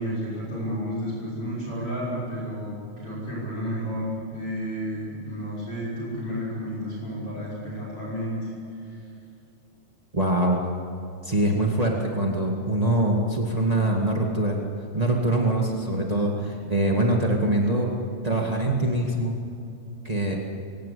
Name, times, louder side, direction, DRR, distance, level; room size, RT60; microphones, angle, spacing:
voice 1, 0.0-8.5 8.8-9.0, equal, 35° left, -5 dB, 6.8 m, -31 dB
voice 2, 10.1-10.6 11.2-14.6 14.9-17.9 18.2-19.3 20.0-20.3, right 1 dB, 35° right, -1 dB, 0.5 m, -23 dB
23.5 x 17.5 x 8.5 m, 2.7 s
omnidirectional pair, 4.3 m